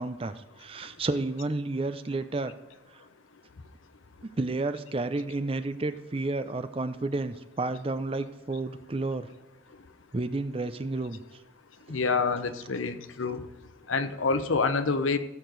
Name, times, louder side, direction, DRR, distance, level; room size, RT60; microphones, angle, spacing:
voice 1, 0.0-2.5 4.2-9.3 10.1-11.2, right 2 dB, 30° right, 11 dB, 0.5 m, -31 dB
voice 2, 11.9-13.4 13.9-15.2, left 4 dB, 80° left, 10 dB, 0.8 m, -27 dB
16.0 x 6.6 x 4.0 m, 1.2 s
head